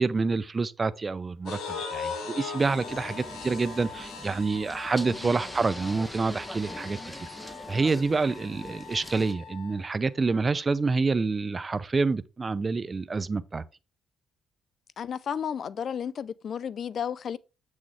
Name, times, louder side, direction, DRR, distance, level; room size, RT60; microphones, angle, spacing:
voice 1, 0.0-7.3 7.7-13.6, right 4 dB, 30° right, 0.6 m, -27 dB
sound 1, 1.5-9.8, left 5 dB, 85° left, 2.1 m, -40 dB
sound 2, 2.6-9.3, equal, 5° left, 0.9 m, -43 dB
voice 2, 15.0-17.4, left 8 dB, 55° left, 0.4 m, -33 dB
7.4 x 6.3 x 3.4 m
cardioid pair, 90°, 0 cm